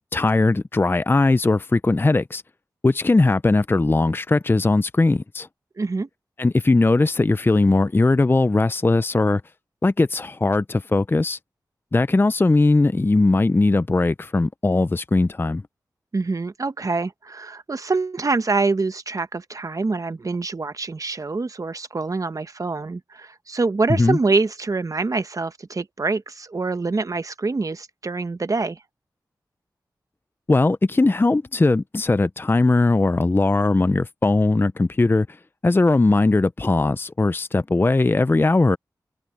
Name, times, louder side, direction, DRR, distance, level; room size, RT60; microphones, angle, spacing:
voice 1, 0.0-2.4 2.8-5.5 6.4-9.4 9.8-11.4 11.9-15.6 24.0-24.2 30.5-35.3 35.6-38.8, left 2 dB, 30° left, 0.5 m, -19 dB
voice 2, 5.8-6.1 16.1-28.8, right 3 dB, 50° right, 1.0 m, -25 dB
cardioid pair, 40°, 8 cm